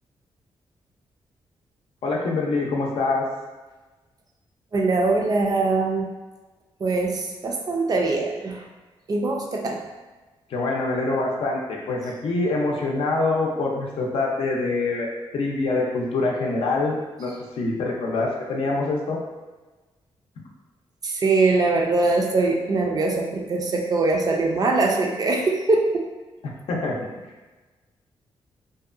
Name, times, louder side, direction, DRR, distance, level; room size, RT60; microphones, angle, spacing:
voice 1, 2.0-3.3 10.5-15.1 15.3-19.2 26.4-27.0, left 3 dB, 75° left, -2 dB, 0.5 m, -25 dB
voice 2, 4.7-6.1 6.8-8.6 9.1-9.8 21.0-26.0, right 3 dB, 40° right, 1 dB, 0.4 m, -22 dB
2.7 x 2.2 x 2.4 m, 1.2 s
cardioid pair, 95°, 10 cm